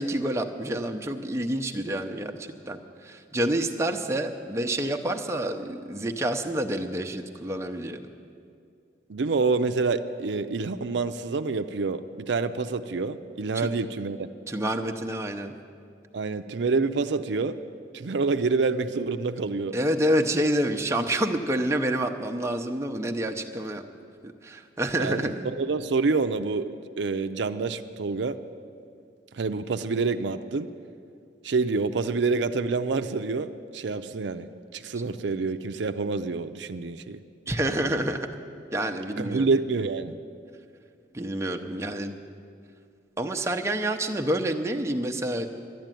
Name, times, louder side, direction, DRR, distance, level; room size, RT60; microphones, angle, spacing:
voice 1, 0.0-8.1 13.5-13.7 14.5-15.5 19.7-23.8 24.2-25.5 37.5-38.4 38.7-39.5 41.1-42.2 43.2-45.5, right 1 dB, 15° right, 4 dB, 0.7 m, -28 dB
voice 2, 9.1-14.3 16.1-17.6 17.9-19.7 25.0-26.7 27.0-28.4 29.3-30.7 31.4-37.2 39.2-40.2, right 4 dB, 75° right, 9 dB, 0.5 m, -27 dB
11.5 x 11.0 x 9.1 m, 2.3 s
head